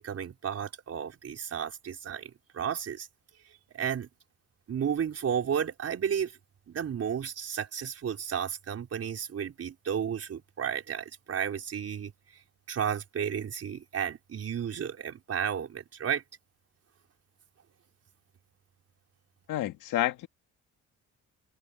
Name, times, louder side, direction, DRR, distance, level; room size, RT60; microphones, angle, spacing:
voice 1, 0.0-3.1 3.7-4.1 4.7-6.4 6.7-12.1 12.7-16.2, right 8 dB, 55° right, 4.4 m, -33 dB
voice 2, 19.5-20.3, left 14 dB, 85° left, 1.7 m, -29 dB
cardioid pair, 90°, 30 cm